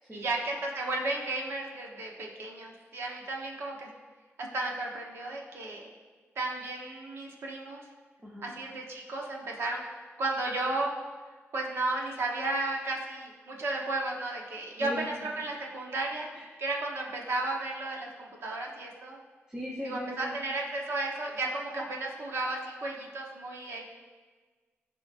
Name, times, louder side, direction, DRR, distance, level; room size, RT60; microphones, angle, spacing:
voice 1, 0.1-3.9 4.4-5.8 6.4-7.8 8.4-9.8 10.2-10.9 11.5-14.9 15.2-16.3 16.6-19.2 19.8-23.9, right 2 dB, 65° right, -1 dB, 1.1 m, -34 dB
voice 2, 8.2-8.5 14.8-15.1 16.3-16.5 19.5-20.4, equal, 15° right, -4 dB, 1.0 m, -38 dB
14.5 x 4.9 x 2.6 m, 1.4 s
wide cardioid pair, 130°, 5 cm